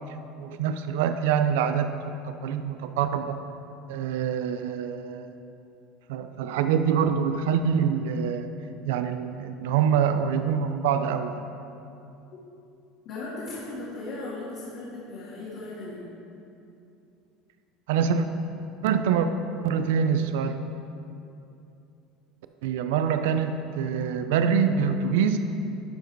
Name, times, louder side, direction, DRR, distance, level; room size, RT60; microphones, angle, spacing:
voice 1, 0.4-2.0 2.4-3.4 3.9-5.3 6.1-8.5 8.9-11.4 17.9-18.3 18.8-19.3 19.6-20.6 22.6-25.4, right 7 dB, 85° right, 9 dB, 0.4 m, -25 dB
voice 2, 13.0-16.1, left 2 dB, 60° left, -8 dB, 2.1 m, -37 dB
11.5 x 5.0 x 4.5 m, 2.7 s
supercardioid pair, 125°, 0 cm